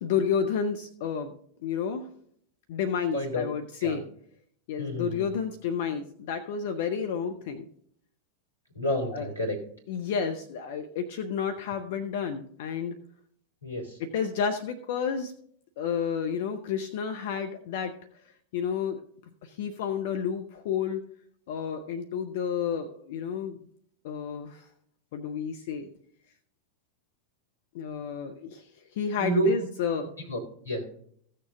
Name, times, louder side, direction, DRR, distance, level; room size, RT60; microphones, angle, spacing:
voice 1, 0.0-1.3 1.6-2.1 2.7-4.0 4.7-7.7 9.1-9.3 9.9-13.0 14.0-15.3 15.8-17.9 18.5-19.0 19.4-21.0 21.5-23.6 24.0-24.7 25.1-25.9 27.7-28.7 28.9-30.1, left 7 dB, 50° left, 7 dB, 0.7 m, -31 dB
voice 2, 3.1-3.4 3.8-4.0 4.8-5.3 8.8-9.6 13.6-14.0 29.2-29.5 30.3-30.4 30.6-30.9, right 1 dB, 90° left, 0 dB, 2.5 m, -29 dB
15.5 x 6.6 x 3.7 m, 0.64 s
figure-of-eight pair, 90°, 0 cm